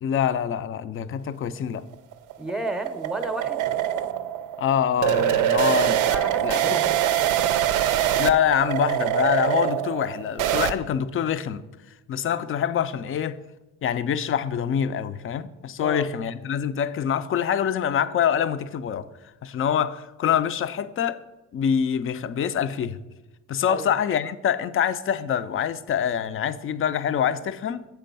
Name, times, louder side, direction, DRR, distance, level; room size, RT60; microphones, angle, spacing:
voice 1, 0.0-1.8 4.6-6.0 6.4-6.8 8.2-11.6 12.1-13.4 13.8-19.1 19.4-21.2 21.5-23.0 23.5-27.9, left 8 dB, 45° left, 0.4 m, -25 dB
sound 1, 1.8-10.7, right 11 dB, 85° right, 0.5 m, -24 dB
voice 2, 2.4-3.6 6.1-7.4 15.8-16.0 23.7-23.9, right 1 dB, ahead, 0.6 m, -33 dB
6.8 x 4.6 x 5.2 m
cardioid pair, 90°, 30 cm